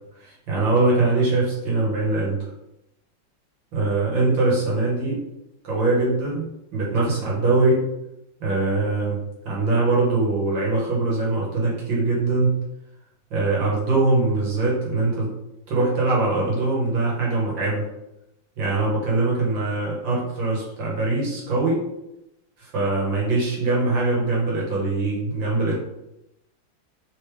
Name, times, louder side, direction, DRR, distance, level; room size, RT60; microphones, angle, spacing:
voice 1, 0.2-2.4 3.7-5.2 5.6-6.5 6.7-7.8 8.4-9.2 9.5-12.6 13.3-15.3 15.7-17.9 18.6-21.8 22.6-25.8, right 2 dB, 85° right, -4 dB, 2.2 m, -22 dB
4.3 x 3.3 x 3.4 m, 0.89 s
omnidirectional pair, 2.0 m